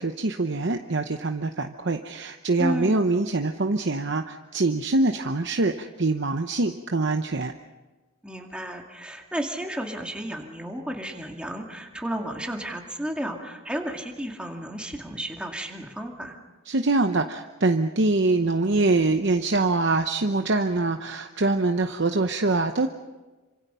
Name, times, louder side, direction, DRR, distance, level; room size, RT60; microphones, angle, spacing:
voice 1, 0.0-7.5 16.7-22.9, right 3 dB, 55° right, 6 dB, 0.9 m, -24 dB
voice 2, 2.6-3.0 8.2-16.4, equal, 5° right, 1 dB, 2.2 m, -33 dB
27.5 x 25.5 x 5.6 m, 1.2 s
head